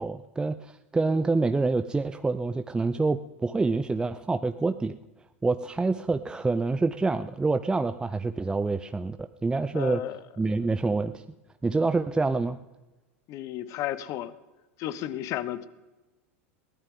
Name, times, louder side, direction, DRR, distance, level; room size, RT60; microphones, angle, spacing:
voice 1, 0.0-4.9 5.4-10.0 10.4-11.2 11.6-12.6, right 3 dB, 10° right, 10 dB, 0.6 m, -27 dB
voice 2, 9.7-10.2 10.6-10.7 13.3-14.3 14.8-15.7, left 12 dB, 45° left, 15 dB, 1.1 m, -33 dB
22.5 x 16.5 x 3.8 m, 1.1 s
hypercardioid pair, 90°, 7 cm